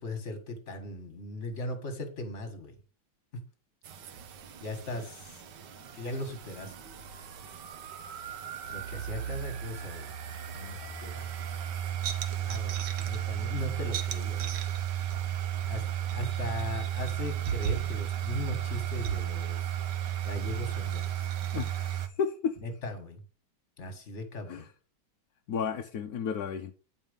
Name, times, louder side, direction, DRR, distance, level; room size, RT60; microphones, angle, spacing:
voice 1, 0.0-2.7 4.6-5.4 6.0-6.7 8.7-10.1 10.5-11.5 12.4-14.4 15.6-15.8 16.1-19.6 20.2-21.3 22.6-23.2 23.8-24.7, left 2 dB, 35° left, 2.1 m, -38 dB
sound 1, 3.8-22.1, right 11 dB, 65° right, 1.5 m, -34 dB
voice 2, 21.5-22.6 24.5-24.7 25.5-26.7, left 6 dB, 60° left, 1.1 m, -33 dB
9.3 x 5.5 x 5.3 m
omnidirectional pair, 2.2 m